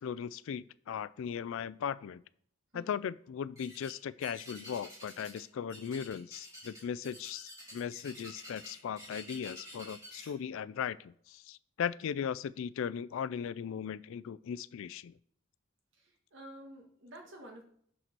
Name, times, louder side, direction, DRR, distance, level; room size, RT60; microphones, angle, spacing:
voice 1, 0.0-2.2 2.7-15.1, left 7 dB, 65° left, 18 dB, 0.3 m, -38 dB
voice 2, 2.7-3.1 16.0-17.6, right 1 dB, 60° right, 2 dB, 1.6 m, -51 dB
sound 1, 3.5-3.9 4.2-5.4 5.7-10.3, equal, 15° right, 3.2 m, -49 dB
6.7 x 4.4 x 6.0 m, 0.65 s
head